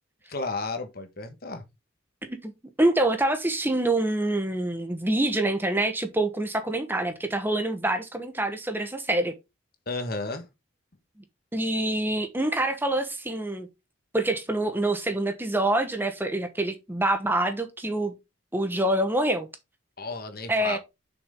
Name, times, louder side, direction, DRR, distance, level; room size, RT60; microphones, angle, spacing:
voice 1, 0.3-1.6 9.9-10.5 20.0-20.8, left 3 dB, 50° left, 1.3 m, -33 dB
voice 2, 2.2-2.5 2.8-9.3 11.5-13.7 14.1-18.1 18.5-19.5 20.5-20.8, right 1 dB, 10° right, 1.1 m, -26 dB
7.1 x 6.1 x 3.6 m
head